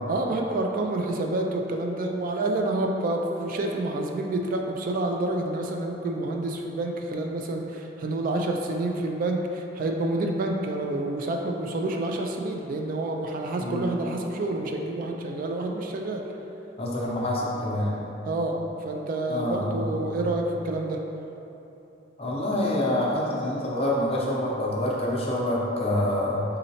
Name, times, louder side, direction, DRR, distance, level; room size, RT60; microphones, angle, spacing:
voice 1, 0.1-16.2 18.3-18.6 18.8-21.0, right 2 dB, 45° right, 2 dB, 0.3 m, -28 dB
voice 2, 16.8-18.0 19.3-19.9 22.2-26.4, left 1 dB, 30° left, -5 dB, 0.6 m, -26 dB
4.2 x 3.8 x 2.8 m, 3.0 s
head